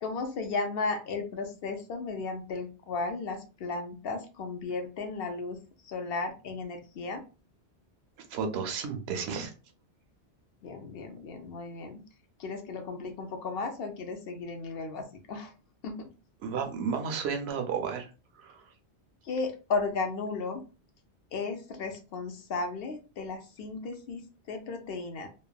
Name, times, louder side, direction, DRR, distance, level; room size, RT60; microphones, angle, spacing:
voice 1, 0.0-5.6 5.8-7.2 10.6-12.0 12.4-15.5 15.8-16.0 19.2-20.6 21.3-25.3, left 3 dB, 65° left, 5 dB, 0.8 m, -35 dB
voice 2, 8.3-9.5 16.4-18.1 18.4-18.6, right 6 dB, 70° right, 5 dB, 0.8 m, -32 dB
3.1 x 2.1 x 2.2 m, 0.32 s
omnidirectional pair, 1.1 m